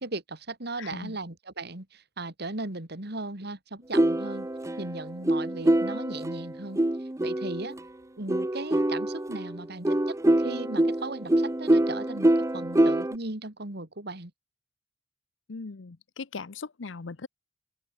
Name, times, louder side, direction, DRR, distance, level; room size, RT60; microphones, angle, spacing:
voice 1, 0.0-4.5 4.8-6.8 7.2-7.8 8.2-14.3, right 2 dB, 60° right, 2.9 m, -37 dB
voice 2, 0.8-1.2 15.5-17.3, left 4 dB, 85° left, 0.8 m, -39 dB
sound 1, 3.9-7.8 8.3-13.1, right 1 dB, 15° right, 0.7 m, -25 dB
open air
head